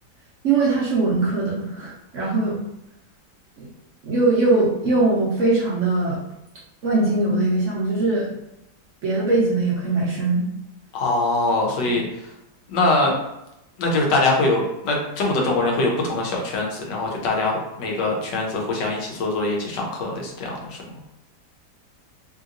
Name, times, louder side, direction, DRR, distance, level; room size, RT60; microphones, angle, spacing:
voice 1, 0.4-2.6 3.6-3.7 4.0-6.2 6.8-8.3 9.0-10.4 11.9-12.0, right 3 dB, 65° right, -5 dB, 0.8 m, -21 dB
voice 2, 10.9-12.0 12.7-13.2 13.8-20.8, left 2 dB, 85° left, 0 dB, 1.4 m, -23 dB
3.1 x 2.8 x 2.5 m, 0.87 s
omnidirectional pair, 1.9 m